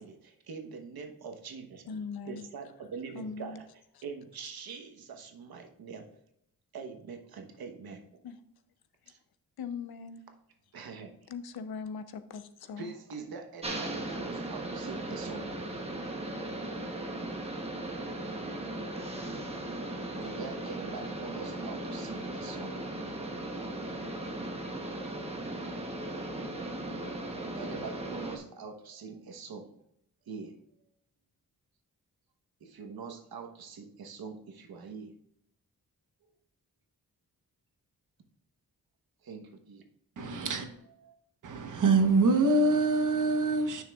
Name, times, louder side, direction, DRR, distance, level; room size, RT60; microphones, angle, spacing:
voice 1, 0.0-1.9 2.2-3.6 4.0-6.1 6.7-8.0 9.1-9.2 10.7-11.1 12.8-15.7 20.2-22.8 27.5-29.7 30.3-30.5 32.6-35.1 39.2-39.8 41.0-41.1, right 5 dB, 85° right, 1.2 m, -44 dB
voice 2, 1.9-2.4 3.1-3.6 4.0-4.1 8.2-8.4 9.6-10.2 11.3-12.9, left 5 dB, 90° left, 0.7 m, -40 dB
sound 1, 13.6-28.4, right 1 dB, 15° right, 1.0 m, -37 dB
voice 3, 40.2-40.7 41.4-43.8, right 3 dB, 55° right, 1.1 m, -25 dB
9.5 x 6.4 x 2.4 m
wide cardioid pair, 165°, 36 cm